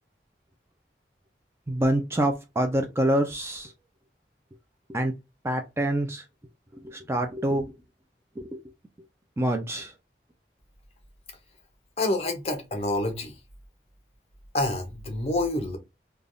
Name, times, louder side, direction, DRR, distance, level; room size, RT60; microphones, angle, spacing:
voice 1, 1.7-3.7 4.9-5.1 5.4-6.2 6.8-7.7 8.4-8.6 9.4-9.9, right 1 dB, 15° right, 0.3 m, -26 dB
voice 2, 12.0-13.3 14.5-15.8, left 2 dB, 35° left, 0.7 m, -27 dB
3.3 x 2.3 x 2.5 m
head